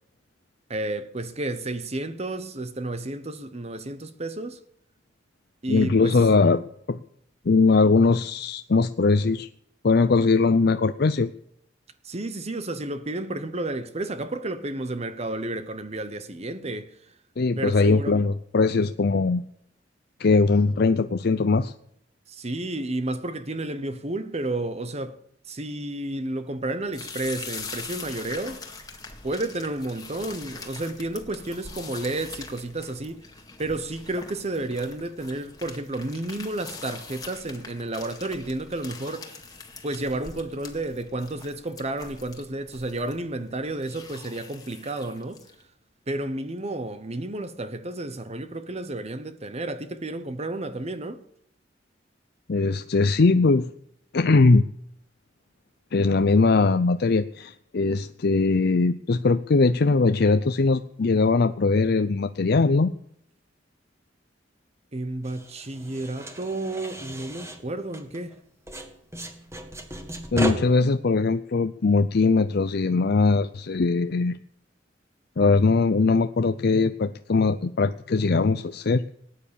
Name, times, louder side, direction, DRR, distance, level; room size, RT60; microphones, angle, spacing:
voice 1, 0.7-4.6 5.6-6.2 12.0-16.9 17.6-18.2 22.3-25.2 25.5-28.7 29.2-33.2 33.6-39.4 39.8-45.4 46.1-51.2 64.9-68.4, right 2 dB, 35° right, 1.0 m, -31 dB
voice 2, 5.7-6.6 6.9-7.0 7.5-9.5 9.8-11.3 17.4-19.4 20.2-21.7 52.5-53.7 54.1-54.6 55.9-62.9 70.3-74.4 75.4-79.0, left 3 dB, 60° left, 0.5 m, -21 dB
sound 1, 26.9-45.6, left 4 dB, 20° left, 1.9 m, -43 dB
sound 2, 65.2-68.4 68.7-70.5, equal, 15° right, 1.8 m, -35 dB
18.5 x 9.7 x 7.0 m
head